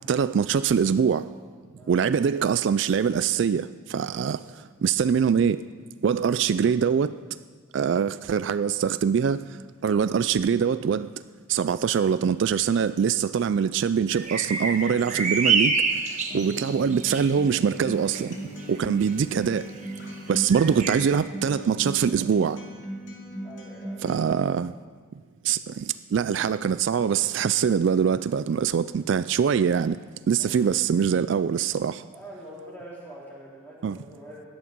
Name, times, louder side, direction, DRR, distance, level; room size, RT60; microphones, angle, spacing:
voice 1, 0.1-1.3 1.9-5.6 6.0-7.2 7.7-11.1 11.5-15.8 16.3-18.4 18.7-19.7 20.3-22.6 24.0-24.7 25.4-30.0 30.3-32.0 33.8-34.0, right 7 dB, 60° right, 0.3 m, -23 dB
voice 2, 4.0-4.4 23.4-24.1 30.4-30.7 32.1-34.5, right 1 dB, 10° left, 3.8 m, -45 dB
sound 1, 14.1-17.3 18.2-18.3 18.8-18.9 19.8-19.9 20.3-21.0, right 5 dB, 35° right, 1.3 m, -27 dB
Acoustic guitar, 16.3-24.3, right 1 dB, 60° left, 2.6 m, -38 dB
17.0 x 11.0 x 5.3 m
head